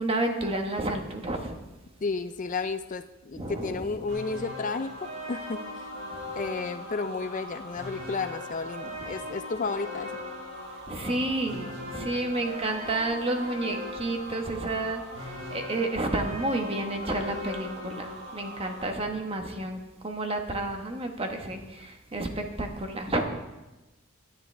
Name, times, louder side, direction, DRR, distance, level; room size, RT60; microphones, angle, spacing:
voice 1, 0.0-1.6 3.4-3.9 6.2-6.3 9.0-9.2 10.9-23.2, right 2 dB, 30° right, 3 dB, 1.3 m, -31 dB
voice 2, 2.0-5.9 6.4-10.1, left 4 dB, 40° left, 10 dB, 0.4 m, -32 dB
sound 1, 4.1-18.9, left 1 dB, 65° right, 4.8 m, -39 dB
17.5 x 11.5 x 3.4 m, 1.1 s
head